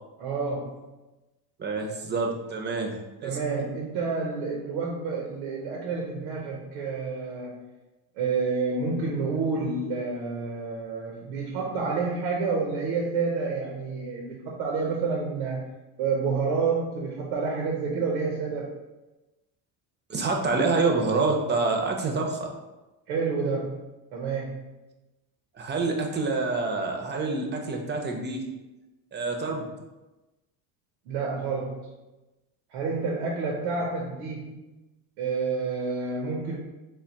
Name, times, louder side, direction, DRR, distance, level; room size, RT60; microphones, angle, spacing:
voice 1, 0.2-0.8 3.2-7.6 8.2-15.6 16.0-18.7 23.1-23.9 24.1-24.6 31.1-31.9 32.7-34.6 35.2-36.6, right 4 dB, 85° right, -1 dB, 0.7 m, -29 dB
voice 2, 1.6-2.9 3.2-3.4 20.1-22.5 25.6-28.4 29.1-29.7, right 3 dB, 25° right, 2 dB, 0.5 m, -27 dB
3.4 x 2.1 x 3.9 m, 1.1 s
supercardioid pair, 100°, 43 cm